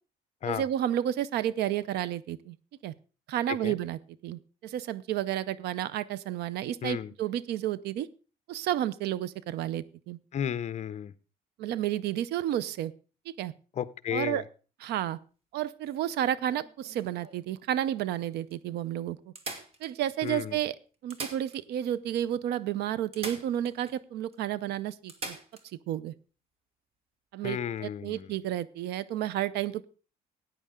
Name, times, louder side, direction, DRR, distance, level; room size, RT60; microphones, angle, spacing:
voice 1, 0.5-2.6 2.8-2.9 3.3-8.1 8.5-10.2 11.6-12.9 13.3-13.5 14.1-14.4 14.8-15.2 15.5-19.3 19.8-20.8 21.0-25.4 25.9-26.1 27.3-29.9, right 11 dB, 75° right, 19 dB, 0.6 m, -31 dB
voice 2, 6.8-7.1 10.3-11.1 13.8-14.4 20.2-20.6 27.4-28.4, left 9 dB, 40° left, 15 dB, 0.7 m, -33 dB
sound 1, 15.8-17.5 18.1-18.2 18.5-18.6 19.3-20.3 20.9-21.9 22.2-22.3 23.1-24.0 24.3-24.4 25.1-25.7 27.6-27.8, right 3 dB, 35° right, 1.7 m, -43 dB
14.0 x 9.3 x 3.7 m, 0.36 s
cardioid pair, 110°, 17 cm